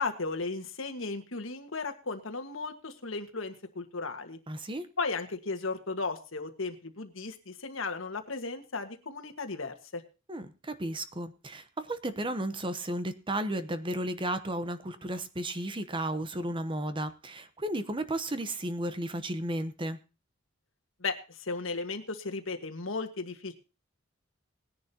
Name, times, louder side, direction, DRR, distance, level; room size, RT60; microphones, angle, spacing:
voice 1, 0.0-4.4 5.0-10.0 21.0-23.5, left 3 dB, 75° left, 6 dB, 1.6 m, -35 dB
voice 2, 4.5-4.9 10.3-20.0, right 1 dB, 25° right, 11 dB, 1.0 m, -34 dB
19.5 x 10.5 x 2.9 m, 0.31 s
head